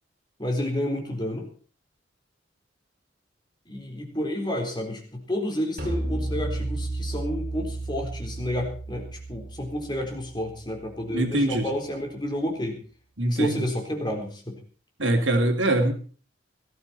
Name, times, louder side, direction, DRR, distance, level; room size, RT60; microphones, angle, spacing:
voice 1, 0.4-1.5 3.7-12.8 13.3-14.6, left 1 dB, 25° left, 2 dB, 4.0 m, -30 dB
sound 1, 5.8-11.2, right 2 dB, 45° right, 4.3 m, -33 dB
voice 2, 11.1-11.7 13.2-13.6 15.0-15.9, right 1 dB, 80° right, 4 dB, 3.1 m, -23 dB
18.5 x 14.0 x 4.3 m, 0.39 s
head